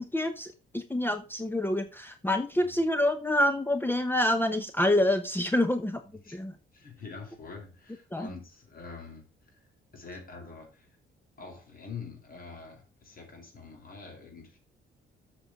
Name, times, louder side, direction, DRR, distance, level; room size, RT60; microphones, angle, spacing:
voice 1, 0.0-6.0 6.3-6.5 8.1-8.3, left 1 dB, 10° left, 9 dB, 1.0 m, -27 dB
voice 2, 6.7-9.2 9.5-9.6 9.9-10.9 11.4-14.6, left 4 dB, 45° left, 2 dB, 4.9 m, -45 dB
7.8 x 6.2 x 6.4 m, 0.33 s
cardioid pair, 90°, 20 cm